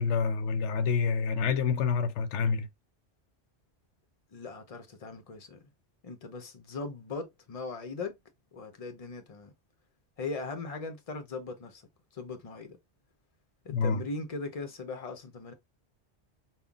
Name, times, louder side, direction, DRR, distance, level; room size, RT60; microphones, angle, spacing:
voice 1, 0.0-2.7 13.7-14.0, left 5 dB, 85° left, 0.9 m, -27 dB
voice 2, 4.3-5.6 6.0-8.1 8.5-9.5 10.2-11.8 12.1-12.8 13.6-15.5, left 3 dB, 35° left, 0.8 m, -39 dB
5.5 x 2.3 x 2.3 m
omnidirectional pair, 1.2 m